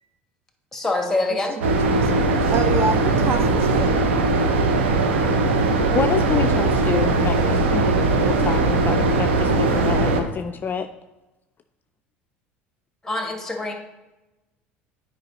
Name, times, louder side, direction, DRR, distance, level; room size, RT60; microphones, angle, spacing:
voice 1, 0.7-1.6 13.0-13.7, left 2 dB, 5° left, 3 dB, 1.5 m, -25 dB
voice 2, 1.6-4.0, right 4 dB, 40° right, 7 dB, 0.7 m, -28 dB
sound 1, 1.6-10.2, right 3 dB, 80° right, 0.7 m, -20 dB
voice 3, 5.9-7.8 8.3-10.9, left 6 dB, 30° left, 7 dB, 0.4 m, -27 dB
9.3 x 5.0 x 3.0 m, 1.0 s
hypercardioid pair, 70°, 6 cm